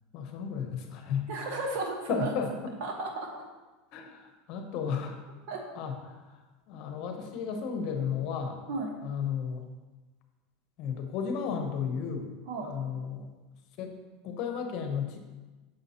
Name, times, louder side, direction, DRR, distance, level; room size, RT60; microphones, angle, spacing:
voice 1, 0.1-1.3 2.1-2.7 3.9-5.2 5.7-8.6 9.0-9.7 10.8-12.3 12.6-13.3 13.8-13.9 14.2-15.2, left 6 dB, 55° left, 5 dB, 0.9 m, -34 dB
voice 2, 1.3-2.3 2.8-3.3 5.5-5.6 8.7-8.9 12.5-12.8, right 3 dB, 70° right, 1 dB, 1.1 m, -34 dB
6.8 x 5.2 x 2.8 m, 1.2 s
supercardioid pair, 125°, 0 cm